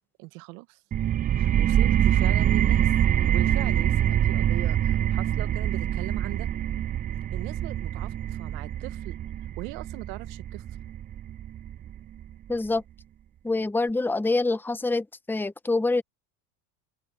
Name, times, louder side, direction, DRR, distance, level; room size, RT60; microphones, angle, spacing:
voice 1, 0.2-0.8 1.4-2.9 3.3-6.5 7.3-9.2 9.6-10.6, right 25 dB, 75° right, 1.5 m, -39 dB
sound 1, 0.9-12.3, right 11 dB, 20° right, 0.3 m, -25 dB
voice 2, 12.5-12.8 13.4-16.0, left 3 dB, 5° left, 1.0 m, -26 dB
open air
supercardioid pair, 105°, 43 cm